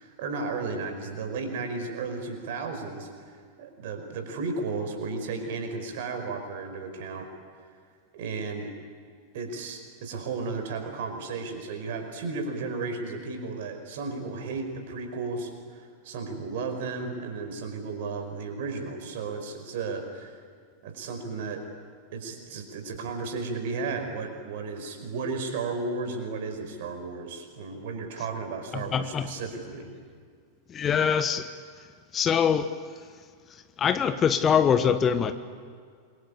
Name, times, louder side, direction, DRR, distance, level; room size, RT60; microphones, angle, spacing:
voice 1, 0.0-3.3 3.6-7.3 8.1-8.7 9.3-20.4 20.8-21.7 22.1-29.9, right 4 dB, 55° right, 6 dB, 5.0 m, -34 dB
voice 2, 28.7-29.3 30.7-31.5 32.1-32.7 33.8-35.3, left 7 dB, 25° left, 11 dB, 1.2 m, -23 dB
27.5 x 24.0 x 8.5 m, 2.1 s
figure-of-eight pair, 90°, 0 cm